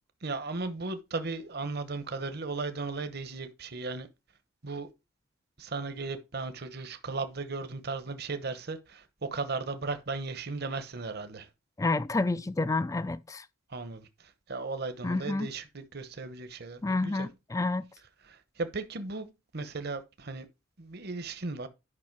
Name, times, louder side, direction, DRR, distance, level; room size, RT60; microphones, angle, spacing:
voice 1, 0.2-4.1 4.6-4.9 5.6-11.5 13.7-17.3 18.2-19.3 19.5-20.4 20.8-21.7, right 3 dB, 50° right, 0.9 m, -36 dB
voice 2, 11.8-13.4 15.0-15.5 16.8-17.8, left 3 dB, 15° left, 0.4 m, -29 dB
9.8 x 5.6 x 4.6 m
head